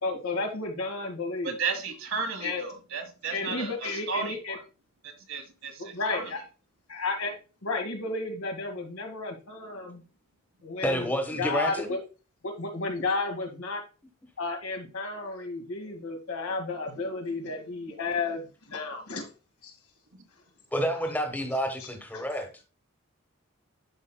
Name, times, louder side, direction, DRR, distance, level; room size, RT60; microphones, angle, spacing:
voice 1, 0.0-1.6 2.4-2.6 3.3-4.6 5.8-6.4 6.9-7.3 7.6-10.0 10.6-12.0 12.4-13.8 14.4-19.3 19.6-19.7 21.8-21.9 22.1-22.2, left 3 dB, 80° left, 3 dB, 1.9 m, -32 dB
voice 2, 1.4-4.6 5.0-6.3, right 4 dB, 70° right, 4 dB, 1.7 m, -34 dB
voice 3, 10.8-11.9 20.7-22.6, equal, 10° left, 4 dB, 1.2 m, -29 dB
11.5 x 4.8 x 2.2 m, 0.33 s
head